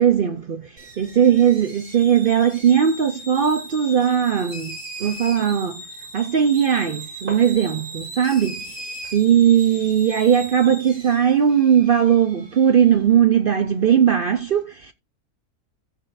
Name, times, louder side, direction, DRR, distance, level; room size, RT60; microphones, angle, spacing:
voice 1, 0.0-5.8 6.1-14.9, right 8 dB, 70° right, 0.5 m, -19 dB
sound 1, 0.8-13.0, right 1 dB, 45° right, 4.2 m, -38 dB
14.5 x 7.3 x 2.5 m
omnidirectional pair, 1.6 m